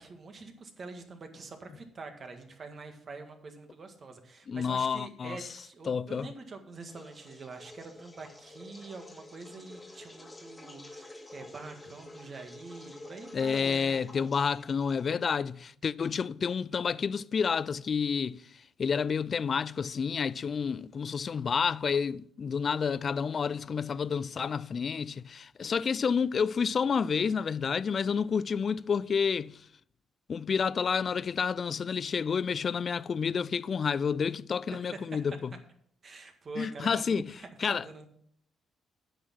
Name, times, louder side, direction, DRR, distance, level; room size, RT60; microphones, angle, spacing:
voice 1, 0.0-14.1 34.7-35.0 36.0-38.1, right 3 dB, 45° right, 1.7 m, -45 dB
voice 2, 4.5-5.4 5.9-6.3 13.3-18.4 18.8-29.6 30.3-35.5 36.6-37.2 37.6-37.8, left 6 dB, 45° left, 0.3 m, -29 dB
sound 1, 6.8-15.3, left 2 dB, 15° left, 1.7 m, -50 dB
9.2 x 6.5 x 5.8 m
cardioid pair, 90°, 0 cm